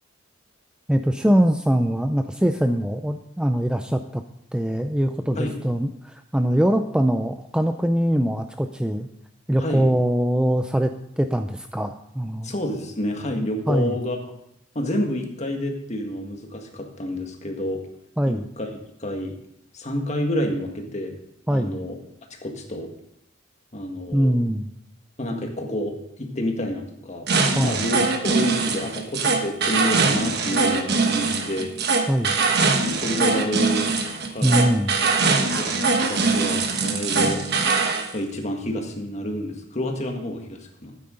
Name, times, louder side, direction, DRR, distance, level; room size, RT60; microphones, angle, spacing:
voice 1, 0.9-4.2 4.5-9.1 9.5-12.5 13.7-13.9 18.2-18.5 21.5-21.8 24.1-24.7 27.5-27.8 32.1-32.4 34.4-34.9, equal, 5° right, 7 dB, 0.4 m, -22 dB
voice 2, 9.6-9.9 12.4-14.2 14.7-17.8 18.3-18.7 19.0-19.3 19.7-21.1 21.5-22.0 22.4-22.9 23.7-24.4 25.2-27.3 27.6-31.7 32.8-33.9 34.3-34.7 35.3-37.4 38.1-41.0, left 1 dB, 35° left, 2 dB, 1.7 m, -29 dB
sound 1, 27.3-38.1, right 4 dB, 55° right, 1.2 m, -22 dB
12.5 x 9.4 x 3.8 m, 0.76 s
head